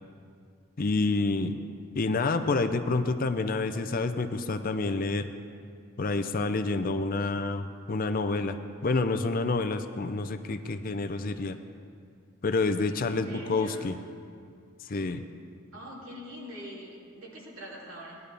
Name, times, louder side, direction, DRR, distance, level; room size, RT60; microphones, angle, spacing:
voice 1, 0.8-1.6 1.9-5.3 6.0-11.6 12.4-14.0 14.8-15.2, left 3 dB, 45° left, 9 dB, 0.5 m, -28 dB
voice 2, 12.9-13.8 15.7-18.2, equal, 85° right, -4 dB, 2.8 m, -43 dB
17.5 x 10.5 x 3.4 m, 2.3 s
head